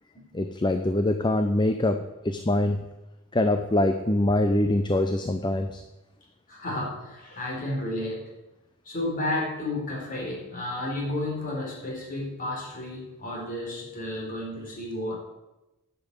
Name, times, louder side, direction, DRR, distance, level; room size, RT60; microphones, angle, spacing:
voice 1, 0.3-2.9 3.3-5.8, left 1 dB, 20° left, 7 dB, 0.6 m, -24 dB
voice 2, 6.5-8.3 8.8-15.2, left 1 dB, 40° left, -2 dB, 4.4 m, -32 dB
10.5 x 7.1 x 8.2 m, 0.99 s
head